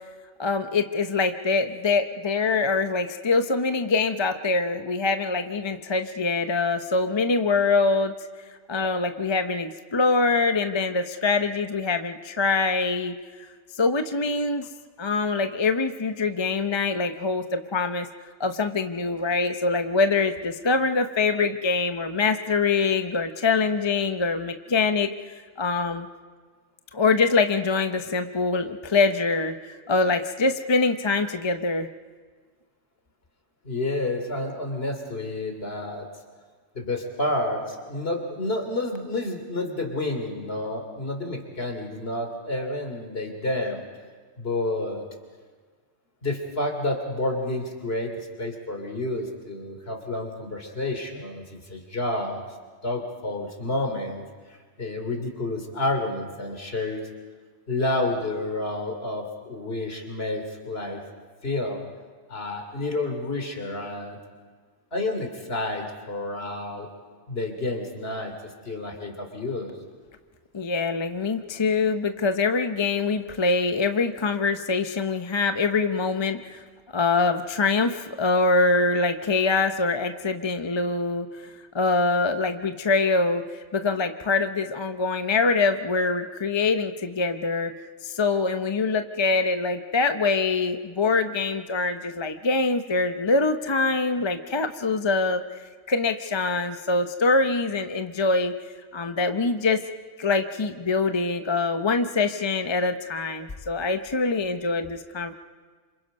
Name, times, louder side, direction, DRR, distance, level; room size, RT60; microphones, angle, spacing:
voice 1, 0.4-8.1 8.7-13.1 13.7-14.7 15.0-18.1 18.4-26.1 26.9-31.9 70.5-76.6 76.9-81.3 81.7-83.4 83.7-87.7 88.0-95.4 95.9-98.5 98.9-99.8 100.2-105.3, left 3 dB, 30° left, 8 dB, 0.6 m, -24 dB
voice 2, 33.6-36.1 36.7-43.8 44.4-45.0 46.2-48.1 48.4-52.4 52.8-54.2 54.8-57.0 57.7-61.0 61.4-61.8 62.3-64.2 64.9-66.9 67.3-68.3 68.6-69.7, left 2 dB, 55° left, 4 dB, 3.2 m, -29 dB
28.0 x 26.5 x 5.4 m, 1.5 s
omnidirectional pair, 1.2 m